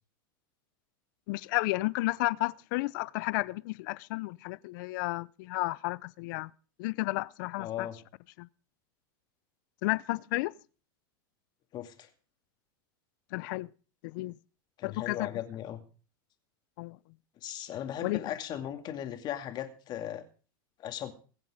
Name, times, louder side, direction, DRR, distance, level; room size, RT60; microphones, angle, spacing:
voice 1, 1.3-6.5 6.8-7.9 8.4-8.5 9.8-10.5 13.3-13.7 14.0-14.4 14.8-15.3 16.8-17.0 18.0-18.2, left 21 dB, 60° left, 0.6 m, -32 dB
voice 2, 7.6-8.0 11.7-12.1 14.8-15.8 17.4-20.2 20.8-21.1, left 11 dB, 40° left, 2.4 m, -37 dB
22.5 x 7.6 x 5.1 m
supercardioid pair, 130°, 12 cm